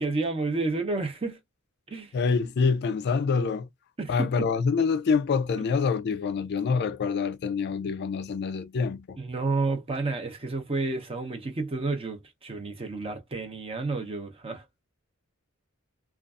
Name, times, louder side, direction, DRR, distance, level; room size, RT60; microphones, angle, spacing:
voice 1, 0.0-1.4 1.9-2.1 4.0-4.5 5.6-5.8 9.2-14.6, right 3 dB, 25° right, 0.6 m, -30 dB
voice 2, 2.1-3.7 4.1-9.2, left 5 dB, 50° left, 0.3 m, -26 dB
2.5 x 2.3 x 2.3 m
head